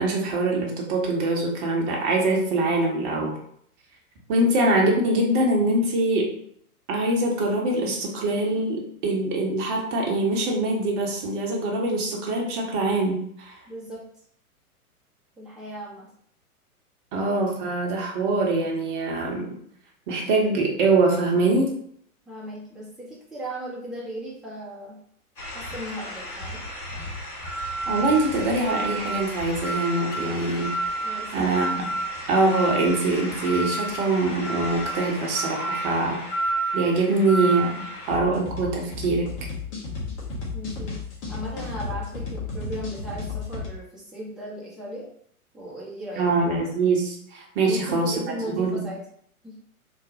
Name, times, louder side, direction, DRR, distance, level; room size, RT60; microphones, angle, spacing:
voice 1, 0.0-3.4 4.3-6.3 6.9-13.6 17.1-19.5 20.1-21.7 27.9-30.7 31.3-31.8 32.3-36.2 36.7-39.5 46.2-48.1 48.6-48.9, right 2 dB, 35° right, -1 dB, 0.8 m, -23 dB
voice 2, 13.7-14.0 15.4-16.1 22.3-25.0 25.5-26.6 31.0-31.5 40.5-41.0 41.3-45.0 45.5-46.2 47.6-49.0 49.4-49.6, equal, ahead, -8 dB, 0.7 m, -36 dB
sound 1, 25.4-38.1, right 1 dB, 85° left, 1.2 m, -31 dB
sound 2, 38.1-43.7, left 4 dB, 35° left, 0.9 m, -33 dB
3.1 x 2.1 x 2.7 m, 0.66 s
figure-of-eight pair, 105°, 45 cm